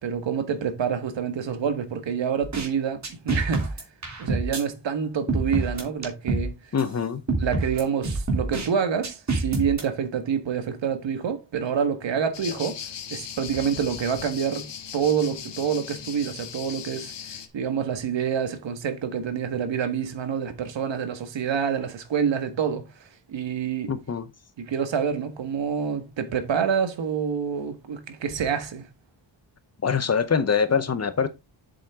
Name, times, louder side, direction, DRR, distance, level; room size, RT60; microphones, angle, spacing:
voice 1, 0.0-3.8 4.2-6.5 7.4-12.8 13.1-14.7 14.9-23.9 24.6-28.8, right 7 dB, 75° right, 1.8 m, -27 dB
sound 1, 2.4-2.7 3.0-4.6 5.3-6.5 6.8-6.9 7.3-8.7 9.0-9.8, right 3 dB, 40° right, 3.3 m, -26 dB
voice 2, 6.7-7.2 23.9-24.3 29.8-31.3, left 6 dB, 35° left, 0.9 m, -24 dB
sound 2, 12.3-17.5, left 8 dB, 70° left, 1.5 m, -38 dB
7.7 x 7.5 x 3.7 m
wide cardioid pair, 145°, 44 cm